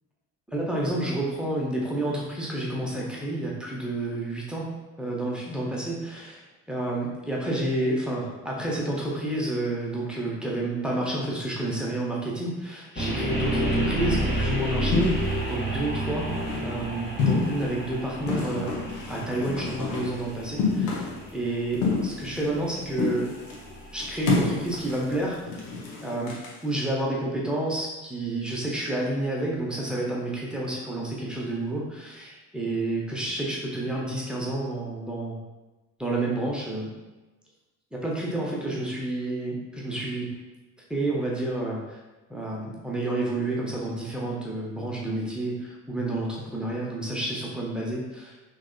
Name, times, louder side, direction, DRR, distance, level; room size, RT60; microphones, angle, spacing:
voice 1, 0.5-4.7 5.0-6.4 6.7-16.3 16.6-18.7 19.1-21.0 21.3-23.3 23.9-25.7 26.0-26.4 26.6-35.4 36.0-36.9 37.9-40.3 40.9-42.0 42.3-48.3, right 2 dB, ahead, -4 dB, 0.8 m, -30 dB
sound 1, 13.0-24.9, right 1 dB, 20° left, 1.1 m, -31 dB
sound 2, 14.1-14.4 14.9-15.6 16.1-16.8 17.2-17.8 18.3-20.2 20.6-21.3 21.7-22.7 22.9-23.6 24.0-26.6, left 4 dB, 70° left, 0.8 m, -29 dB
3.5 x 3.0 x 2.2 m, 1.1 s
figure-of-eight pair, 50°, 47 cm